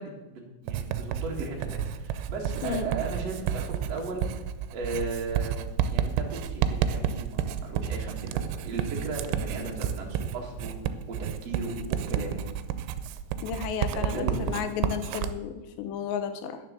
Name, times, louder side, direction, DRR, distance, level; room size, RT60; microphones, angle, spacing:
voice 1, 0.0-4.2 4.7-5.6 5.9-10.7 11.1-12.5 13.9-14.6, right 3 dB, 45° right, -2 dB, 2.4 m, -36 dB
Writing, 0.7-15.3, right 9 dB, 85° right, 3.1 m, -31 dB
voice 2, 13.4-16.6, left 7 dB, 80° left, 9 dB, 2.9 m, -33 dB
10.5 x 10.0 x 6.8 m, 1.1 s
omnidirectional pair, 5.3 m